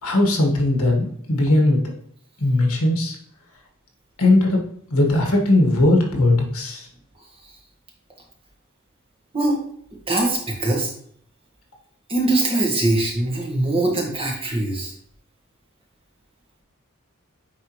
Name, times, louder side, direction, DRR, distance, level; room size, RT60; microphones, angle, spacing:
voice 1, 0.0-1.8 2.4-3.1 4.2-4.6 4.9-6.9, left 2 dB, 75° left, 1 dB, 1.6 m, -18 dB
voice 2, 10.1-10.9 12.1-14.9, right 2 dB, 25° right, 0 dB, 1.4 m, -22 dB
9.5 x 4.0 x 3.1 m, 0.65 s
head